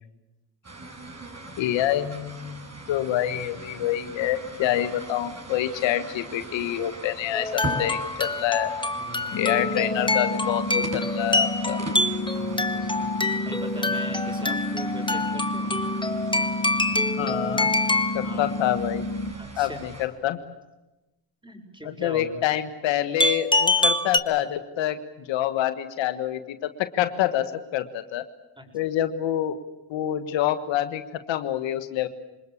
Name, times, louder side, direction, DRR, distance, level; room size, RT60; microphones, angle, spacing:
sound 1, 0.6-20.1, right 2 dB, 35° right, 7.4 m, -41 dB
voice 1, 1.6-8.7 9.3-11.8 17.2-17.7 18.1-19.0 19.6-20.4 21.8-25.0 25.3-28.2 28.7-29.6 29.9-31.0 31.3-32.1, left 12 dB, 85° left, 11 dB, 1.5 m, -27 dB
sound 2, 7.3-18.3 23.2-24.2, left 2 dB, 10° left, 1.8 m, -26 dB
voice 2, 8.9-9.5 12.3-13.1 13.4-15.7 18.2-18.4 19.4-19.8 21.4-22.4 28.6-28.7, right 1 dB, 10° right, 5 dB, 7.5 m, -41 dB
sound 3, 9.3-19.3, left 2 dB, 60° left, 3.2 m, -31 dB
26.5 x 20.5 x 8.7 m, 1.0 s
supercardioid pair, 60°, 44 cm